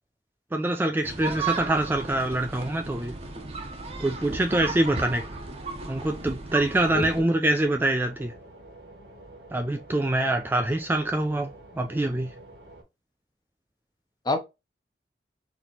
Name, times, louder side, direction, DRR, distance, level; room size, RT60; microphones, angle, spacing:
voice 1, 0.5-3.2 4.0-5.2 5.9-8.3 9.5-11.5 11.8-12.3, right 1 dB, 10° right, 0.3 m, -25 dB
sound 1, 1.0-7.2, right 4 dB, 35° right, 0.7 m, -35 dB
voice 2, 4.6-5.0 6.9-7.3 14.2-14.4, left 3 dB, 25° left, 0.6 m, -29 dB
sound 2, 7.5-12.8, right 1 dB, 80° right, 1.6 m, -48 dB
4.0 x 2.9 x 2.8 m
head